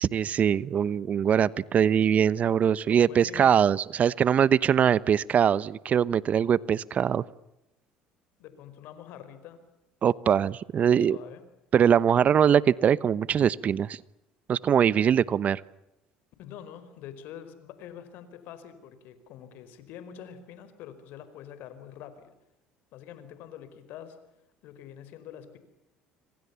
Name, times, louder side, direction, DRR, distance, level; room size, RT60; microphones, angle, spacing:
voice 1, 0.0-7.2 10.0-11.2 11.7-14.0 14.5-15.6, right 8 dB, 45° right, 20 dB, 1.0 m, -22 dB
voice 2, 2.9-3.6 8.4-9.6 10.8-11.4 16.4-22.3 22.9-24.2 24.6-25.6, left 9 dB, 65° left, 12 dB, 4.7 m, -45 dB
27.5 x 25.5 x 7.0 m, 0.89 s
hypercardioid pair, 75°, 3 cm